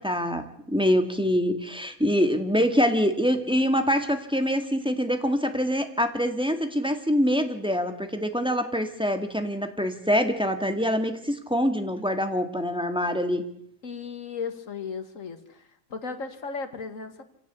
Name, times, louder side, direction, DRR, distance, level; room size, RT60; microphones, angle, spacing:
voice 1, 0.0-13.5, equal, 5° right, 6 dB, 2.0 m, -25 dB
voice 2, 13.8-15.6 15.9-17.2, left 5 dB, 60° left, 8 dB, 2.3 m, -35 dB
27.5 x 16.0 x 8.3 m, 0.74 s
omnidirectional pair, 1.5 m